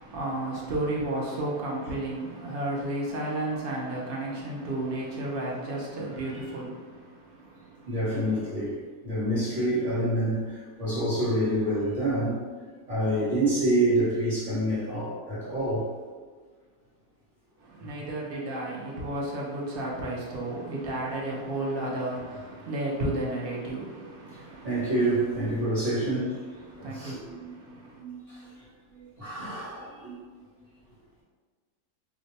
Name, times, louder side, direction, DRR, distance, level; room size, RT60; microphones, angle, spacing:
voice 1, 0.0-7.9 17.6-24.9 26.6-28.0, right 1 dB, 65° right, -3 dB, 0.5 m, -33 dB
voice 2, 7.9-8.8 9.0-12.4 12.9-15.9 17.8-17.9 24.4-26.3 26.8-27.6 28.0-28.6 28.9-30.4, right 1 dB, 40° right, -11 dB, 0.9 m, -28 dB
2.5 x 2.1 x 3.9 m, 1.5 s
omnidirectional pair, 1.6 m